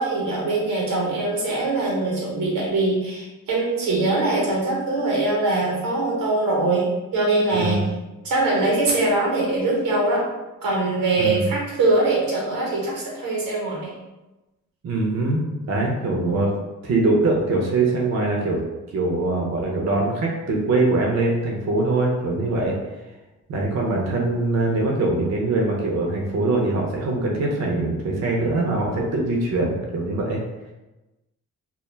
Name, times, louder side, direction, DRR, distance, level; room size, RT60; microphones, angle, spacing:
voice 1, 0.0-7.8 8.2-10.2 10.6-13.9, right 2 dB, 90° right, -3 dB, 0.9 m, -22 dB
voice 2, 7.5-7.9 11.2-11.5 14.8-16.5 16.8-18.6 18.9-22.7 23.5-30.4, right 2 dB, 55° right, -1 dB, 0.6 m, -22 dB
2.2 x 2.0 x 3.1 m, 1.1 s
cardioid pair, 60°, 33 cm